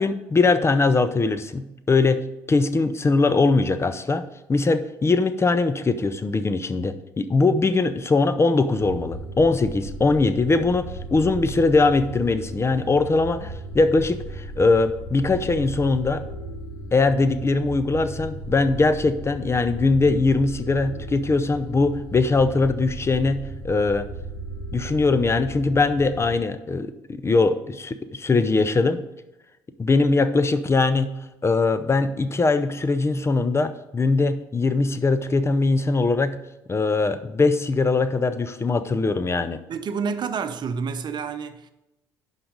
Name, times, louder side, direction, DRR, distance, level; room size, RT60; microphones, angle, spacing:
voice 1, 0.0-16.2 16.9-24.1 24.7-29.0 29.8-36.4 36.7-39.6, left 3 dB, 25° left, 0.6 m, -21 dB
sound 1, 8.7-26.5, right 2 dB, 90° left, 2.4 m, -36 dB
voice 2, 39.7-41.7, right 6 dB, 45° right, 0.8 m, -29 dB
11.0 x 4.1 x 5.1 m
hypercardioid pair, 55°, 10 cm